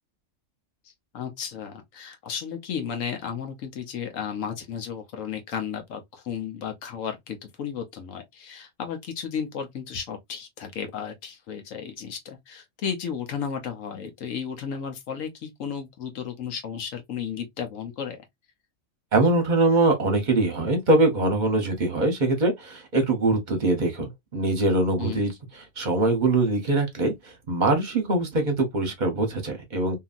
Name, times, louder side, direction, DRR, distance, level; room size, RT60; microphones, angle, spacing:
voice 1, 1.1-18.2 25.0-25.2, left 7 dB, 75° left, 1.2 m, -34 dB
voice 2, 19.1-25.3 25.8-30.0, right 2 dB, 40° right, 0.9 m, -23 dB
2.9 x 2.6 x 2.4 m
omnidirectional pair, 1.4 m